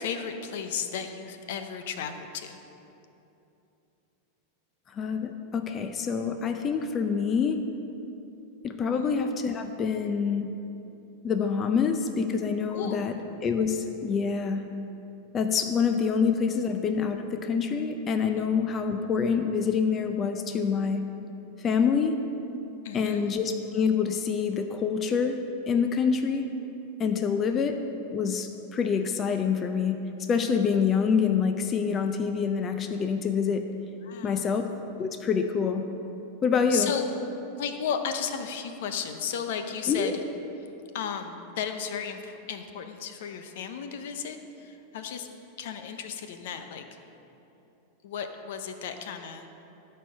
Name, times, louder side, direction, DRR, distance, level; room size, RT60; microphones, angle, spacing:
voice 1, 0.0-2.6 9.0-9.1 12.7-13.2 22.8-23.2 34.0-34.6 36.7-37.0 37.6-40.2 40.9-45.3 45.6-46.9 48.0-49.5, left 7 dB, 70° left, 7 dB, 0.8 m, -34 dB
voice 2, 5.0-7.6 8.6-10.5 11.2-13.1 13.4-14.6 15.3-21.0 21.6-22.2 22.9-25.4 25.7-26.5 27.0-27.8 28.1-30.0 30.3-33.7 34.2-34.7 35.0-35.9 36.4-36.9 39.9-40.1, left 6 dB, 30° left, 6 dB, 0.5 m, -26 dB
12.5 x 4.5 x 6.5 m, 2.9 s
supercardioid pair, 130°, 0 cm